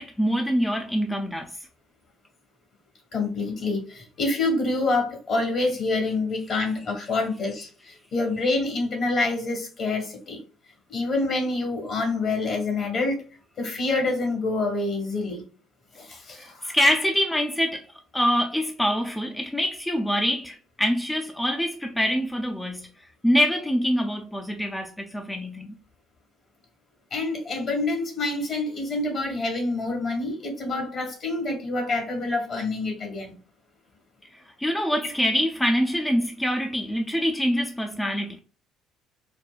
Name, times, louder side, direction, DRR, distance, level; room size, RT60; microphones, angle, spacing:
voice 1, 0.0-1.6 16.4-17.9 18.1-22.9 23.2-25.7 34.6-38.4, equal, 10° left, 0.5 m, -25 dB
voice 2, 3.1-10.4 10.9-13.2 13.6-15.4 16.0-16.7 27.1-33.4, left 2 dB, 50° left, 1.4 m, -27 dB
4.3 x 2.2 x 2.3 m
hypercardioid pair, 50°, 0 cm